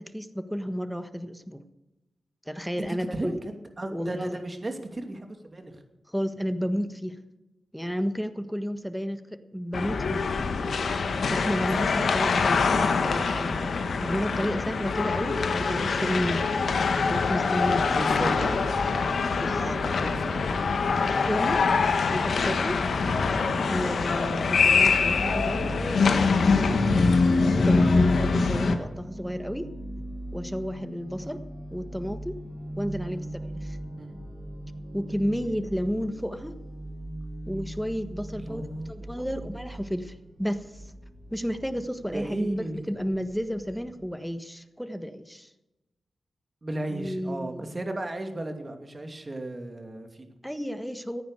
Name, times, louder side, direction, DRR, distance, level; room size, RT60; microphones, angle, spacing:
voice 1, 0.0-1.6 2.5-3.4 3.9-4.4 6.1-7.2 7.7-10.3 11.3-13.7 14.0-16.4 17.1-18.1 19.4-19.6 21.2-21.6 22.1-22.8 23.7-29.7 30.3-31.4 31.7-32.3 32.8-33.8 34.9-36.6 37.5-40.8 41.3-45.5 46.9-47.6 50.4-51.2, equal, ahead, 10 dB, 1.4 m, -32 dB
voice 2, 2.9-5.7 12.7-13.3 17.9-18.6 19.6-20.5 31.2-31.4 33.1-33.2 34.0-34.2 38.4-39.3 42.1-42.8 46.6-50.3, right 1 dB, 35° right, 5 dB, 2.6 m, -35 dB
sound 1, 9.7-28.7, left 4 dB, 75° left, 1.4 m, -24 dB
sound 2, 24.7-44.1, right 1 dB, 55° right, 6.7 m, -40 dB
15.0 x 9.4 x 6.7 m, 1.0 s
cardioid pair, 45°, 0 cm